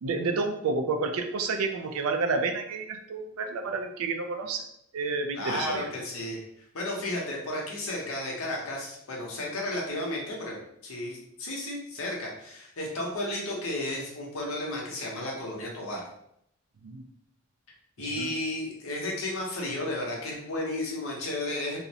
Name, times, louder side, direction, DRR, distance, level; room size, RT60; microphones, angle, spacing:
voice 1, 0.0-4.7 4.9-5.9 16.8-17.0 18.1-18.3, right 4 dB, 85° right, 6 dB, 0.4 m, -30 dB
voice 2, 5.3-6.4 6.7-16.0 18.0-21.8, left 1 dB, 70° left, -2 dB, 0.7 m, -33 dB
2.4 x 2.0 x 2.7 m, 0.74 s
head